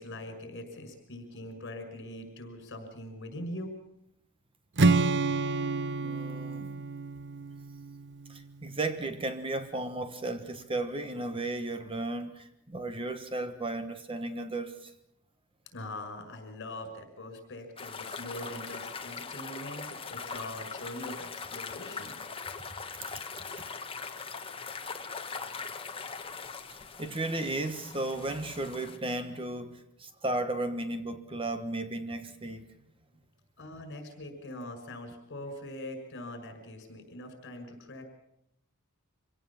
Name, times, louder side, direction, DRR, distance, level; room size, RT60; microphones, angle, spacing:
voice 1, 0.0-3.7 15.7-22.1 33.6-38.0, left 1 dB, 55° left, 5.9 m, -42 dB
Strum, 4.8-8.9, right 3 dB, 55° right, 0.9 m, -29 dB
voice 2, 6.0-6.8 8.3-14.9 26.7-32.7, right 2 dB, 25° right, 1.2 m, -34 dB
sound 1, 17.8-29.0, left 5 dB, 25° left, 1.5 m, -41 dB
25.5 x 17.5 x 7.3 m
head